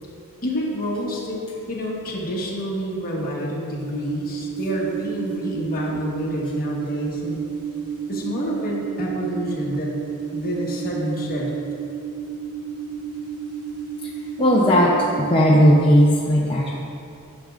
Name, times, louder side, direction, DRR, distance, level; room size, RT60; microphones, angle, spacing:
voice 1, 0.4-7.4 8.1-9.9 10.3-11.5, equal, 40° left, -3 dB, 1.2 m, -28 dB
sound 1, 3.8-15.9, right 7 dB, 90° right, 1.1 m, -31 dB
voice 2, 14.4-16.7, equal, 25° left, -5 dB, 0.6 m, -16 dB
10.5 x 6.2 x 2.4 m, 2.5 s
head